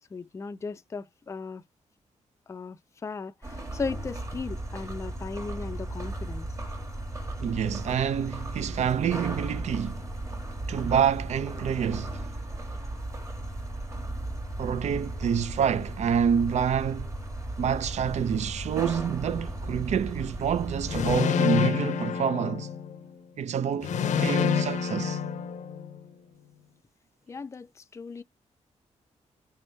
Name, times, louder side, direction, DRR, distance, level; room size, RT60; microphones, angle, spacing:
voice 1, 0.1-1.6 2.5-6.5 27.3-28.2, left 4 dB, 25° left, 0.4 m, -37 dB
sound 1, 3.4-21.2, right 1 dB, 25° right, 1.5 m, -36 dB
voice 2, 7.4-10.0 10.7-12.3 14.6-17.1 17.6-22.7 23.4-25.2, right 8 dB, 65° right, 0.5 m, -27 dB
sound 2, 20.9-23.1 23.8-26.0, left 7 dB, 75° left, 0.6 m, -27 dB
3.5 x 3.4 x 2.6 m
cardioid pair, 95°, 13 cm